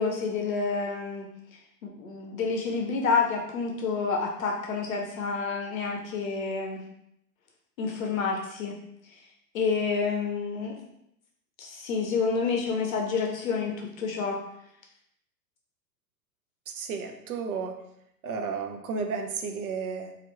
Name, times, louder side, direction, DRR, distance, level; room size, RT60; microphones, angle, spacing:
voice 1, 0.0-6.8 7.8-8.8 9.1-9.2 9.5-10.8 11.6-14.4, left 5 dB, 55° left, 1 dB, 0.6 m, -29 dB
voice 2, 16.7-17.8 18.2-20.1, right 5 dB, 60° right, 4 dB, 0.6 m, -33 dB
2.8 x 2.5 x 3.1 m, 0.77 s
figure-of-eight pair, 105°, 49 cm